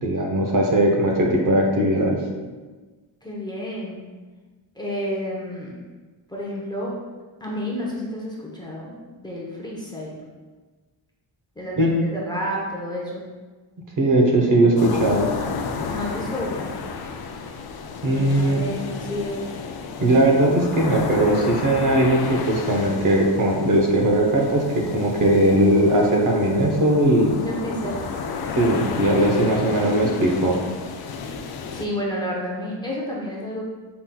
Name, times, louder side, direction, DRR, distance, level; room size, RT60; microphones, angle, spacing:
voice 1, 0.0-2.2 11.8-11.9 14.0-15.3 18.0-18.6 20.0-27.3 28.5-30.6, right 1 dB, 45° right, -1 dB, 0.7 m, -19 dB
voice 2, 3.2-4.0 4.8-5.8 6.3-6.9 7.4-10.2 11.6-13.2 15.9-16.7 18.1-19.5 27.4-28.0 29.8-30.2 31.7-33.6, equal, 10° left, -5 dB, 0.6 m, -30 dB
sound 1, 14.8-31.9, left 5 dB, 55° left, 0.5 m, -32 dB
5.7 x 3.8 x 2.2 m, 1.3 s
wide cardioid pair, 145°, 46 cm